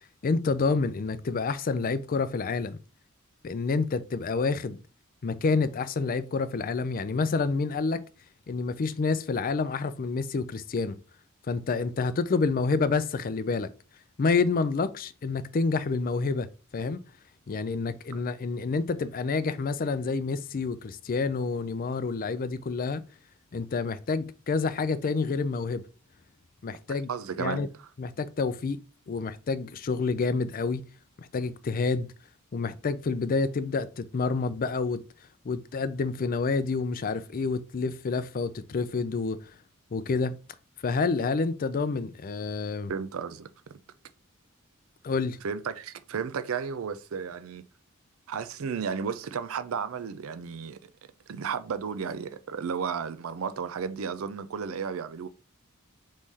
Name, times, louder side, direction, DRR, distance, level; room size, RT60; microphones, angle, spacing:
voice 1, 0.2-2.8 3.4-4.8 5.2-8.0 8.5-11.0 11.5-13.7 14.2-16.5 16.7-17.0 17.5-23.0 23.5-25.9 26.6-27.1 27.4-27.7 28.0-30.9 31.2-32.1 32.5-35.0 35.4-39.5 39.9-40.4 40.8-42.9 45.0-45.4, left 4 dB, 45° left, 0.4 m, -28 dB
voice 2, 27.1-27.7 42.9-43.8 45.4-47.6 48.3-50.8 51.3-55.3, right 6 dB, 75° right, 0.4 m, -33 dB
3.7 x 3.2 x 4.1 m
head